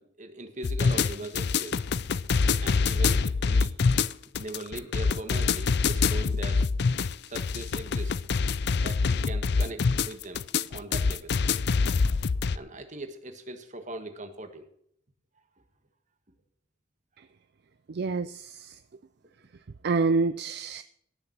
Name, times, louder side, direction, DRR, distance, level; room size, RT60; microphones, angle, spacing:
voice 1, 0.0-1.9 2.5-3.7 4.4-6.7 7.3-8.2 8.8-10.4 10.7-11.4 12.3-14.7, right 2 dB, 40° right, 7 dB, 1.7 m, -40 dB
sound 1, 0.6-12.6, left 5 dB, 60° left, 0.5 m, -25 dB
voice 2, 17.9-18.7 19.8-20.8, right 4 dB, 60° right, 13 dB, 0.5 m, -27 dB
18.0 x 6.8 x 6.0 m, 0.69 s
head